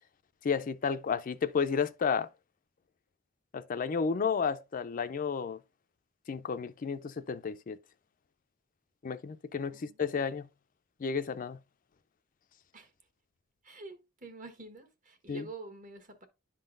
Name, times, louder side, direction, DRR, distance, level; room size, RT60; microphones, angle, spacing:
voice 1, 0.4-2.3 3.5-5.6 6.3-7.8 9.0-10.5 11.0-11.6 15.3-15.4, left 6 dB, 45° left, 0.4 m, -32 dB
voice 2, 13.6-16.3, right 2 dB, 40° right, 1.2 m, -47 dB
11.5 x 3.8 x 2.5 m
head